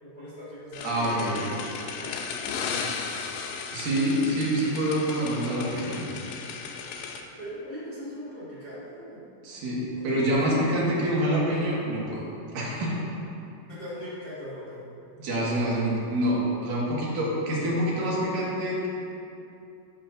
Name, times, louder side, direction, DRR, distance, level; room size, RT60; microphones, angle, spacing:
voice 1, 0.0-1.2 1.5-1.6 2.0-2.2 7.4-9.2 9.9-10.4 13.7-14.9, equal, 45° left, -11 dB, 1.3 m, -40 dB
sound 1, 0.7-7.2, left 5 dB, 85° left, 2.7 m, -35 dB
voice 2, 0.8-1.5 3.7-6.0 9.4-12.3 12.5-13.0 15.2-18.9, right 1 dB, 60° right, -6 dB, 2.8 m, -26 dB
12.5 x 7.5 x 2.5 m, 2.6 s
omnidirectional pair, 5.1 m